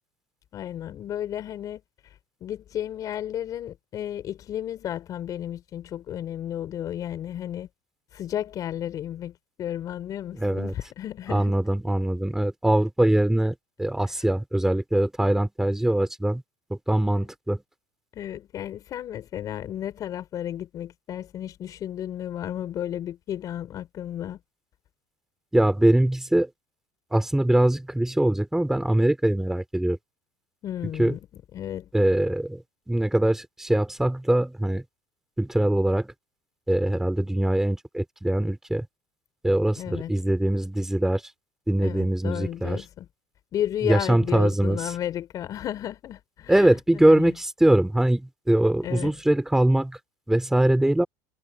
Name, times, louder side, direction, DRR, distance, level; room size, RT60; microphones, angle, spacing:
voice 1, 0.5-1.8 2.4-7.7 8.1-11.5 18.1-24.4 30.6-31.2 31.5-31.9 39.8-40.1 41.8-43.1 43.5-47.4 48.8-49.2, left 11 dB, 45° left, 4.3 m, -33 dB
voice 2, 10.4-10.7 11.3-16.4 16.9-17.6 25.5-26.5 27.1-30.0 31.0-31.1 31.9-32.6 32.9-34.8 35.4-36.1 36.7-38.8 39.4-41.2 41.7-42.8 43.8-44.9 46.5-50.0 50.3-51.1, right 1 dB, 5° right, 3.2 m, -22 dB
supercardioid pair, 110°, 9 cm